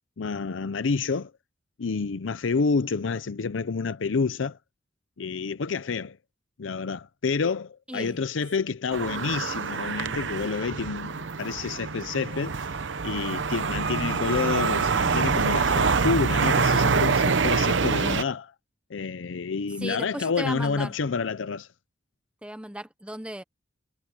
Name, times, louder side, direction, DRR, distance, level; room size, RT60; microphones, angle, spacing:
voice 1, 0.2-1.3 1.8-4.6 5.2-6.2 6.6-12.5 13.0-18.5 18.9-21.7, left 5 dB, 85° left, 0.6 m, -28 dB
voice 2, 7.9-8.2 19.8-21.0 22.4-23.4, right 1 dB, 5° right, 1.0 m, -35 dB
sound 1, 8.9-18.2, right 5 dB, 70° right, 0.8 m, -25 dB
head